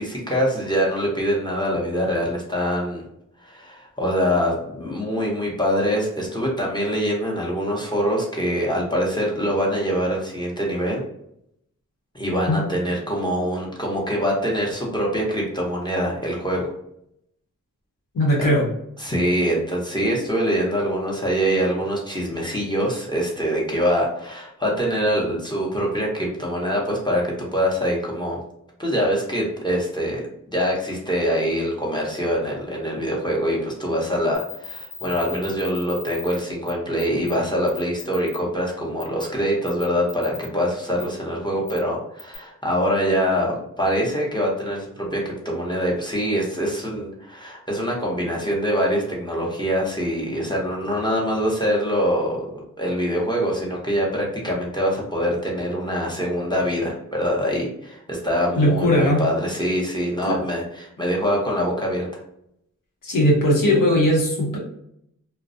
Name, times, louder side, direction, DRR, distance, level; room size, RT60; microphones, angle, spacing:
voice 1, 0.0-3.0 3.4-11.0 12.1-16.7 19.0-28.4 28.8-62.1, equal, 15° left, -2 dB, 0.9 m, -24 dB
voice 2, 18.1-18.7 58.6-59.2 60.2-60.4 63.0-64.6, left 1 dB, 80° left, -2 dB, 0.8 m, -18 dB
sound 1, 34.3-36.4 36.7-36.8 37.0-37.3 37.7-38.4 39.0-39.2 39.7-40.5 41.0-41.1 41.7-41.8 42.2-42.4, left 8 dB, 60° left, 1.0 m, -37 dB
2.2 x 2.1 x 2.6 m, 0.74 s
cardioid pair, 45°, 32 cm